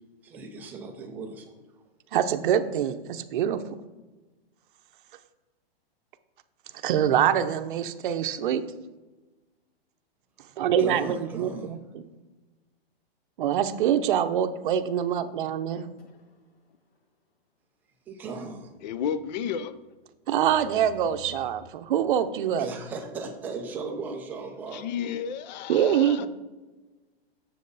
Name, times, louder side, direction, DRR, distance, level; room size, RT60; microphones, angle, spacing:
voice 1, 0.2-1.6 10.8-11.7 18.1-18.7 22.6-24.8, right 4 dB, 5° right, 0.4 m, -37 dB
voice 2, 2.1-3.6 6.8-8.6 10.6-12.1 13.4-15.8 20.3-22.7 25.7-26.3, right 9 dB, 55° right, 0.7 m, -25 dB
sound 1, 15.7-16.7 16.9-17.0 18.5-21.7, left 2 dB, 70° left, 2.1 m, -53 dB
voice 3, 18.8-19.8 24.7-26.3, left 8 dB, 45° left, 0.5 m, -32 dB
7.5 x 6.7 x 4.0 m
hypercardioid pair, 155°, 31 cm